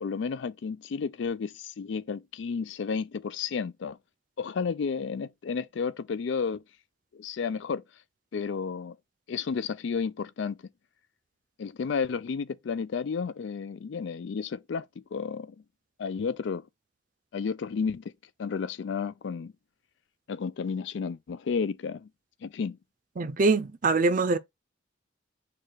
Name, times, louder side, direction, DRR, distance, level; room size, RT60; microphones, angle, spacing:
voice 1, 0.0-4.0 4.4-6.6 7.1-7.8 8.3-9.0 9.3-10.6 11.6-15.6 16.0-16.7 17.3-18.0 18.4-19.5 20.3-22.1 22.4-22.8, left 5 dB, 65° left, 0.4 m, -32 dB
voice 2, 23.2-24.4, right 3 dB, 45° right, 0.5 m, -23 dB
4.6 x 2.4 x 4.6 m
head